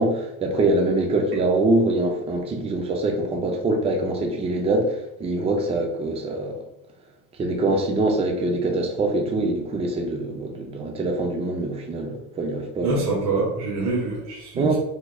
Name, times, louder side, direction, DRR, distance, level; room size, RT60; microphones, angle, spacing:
voice 1, 0.0-6.6 7.4-13.0 14.6-14.8, right 2 dB, 15° right, 3 dB, 0.4 m, -24 dB
voice 2, 12.8-14.8, right 3 dB, 65° right, -6 dB, 1.2 m, -25 dB
3.6 x 3.0 x 2.2 m, 0.84 s
cardioid pair, 120°, 42 cm